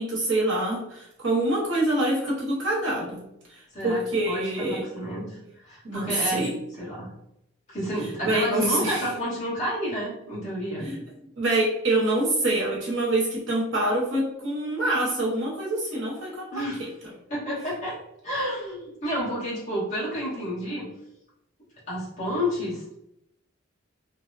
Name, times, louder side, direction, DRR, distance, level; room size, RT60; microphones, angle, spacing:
voice 1, 0.0-3.2 3.5-4.9 5.8-6.5 8.2-9.0 10.8-11.0 11.4-16.9, right 1 dB, 70° right, -4 dB, 0.9 m, -26 dB
voice 2, 3.7-6.5 6.8-7.1 7.7-10.9 16.5-16.9 17.3-18.0 18.2-20.9 21.9-23.0, equal, 35° left, -8 dB, 1.2 m, -30 dB
2.6 x 2.1 x 2.4 m, 0.79 s
head